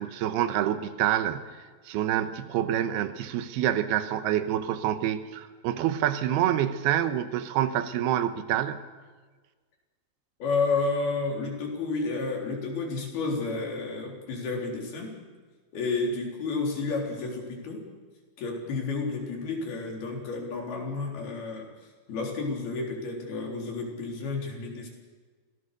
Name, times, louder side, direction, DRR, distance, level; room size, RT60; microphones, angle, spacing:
voice 1, 0.0-1.5 1.9-8.9, right 11 dB, 80° right, 11 dB, 2.9 m, -27 dB
voice 2, 10.4-15.2 15.7-17.8 18.4-21.7 22.1-24.9, left 3 dB, 70° left, 0 dB, 5.6 m, -31 dB
26.0 x 18.0 x 6.7 m, 1.4 s
omnidirectional pair, 4.6 m